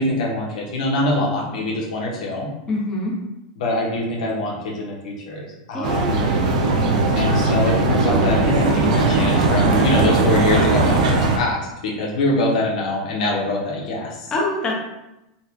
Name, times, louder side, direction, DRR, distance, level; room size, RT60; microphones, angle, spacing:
voice 1, 0.0-2.5 3.6-6.2 7.1-14.3, left 1 dB, 80° left, -2 dB, 1.1 m, -24 dB
voice 2, 2.7-3.2 5.7-6.3 14.3-14.7, left 2 dB, 20° left, -4 dB, 0.7 m, -25 dB
sound 1, 5.8-11.4, right 3 dB, 85° right, 0.6 m, -18 dB
3.9 x 2.3 x 2.9 m, 0.93 s
supercardioid pair, 150°, 4 cm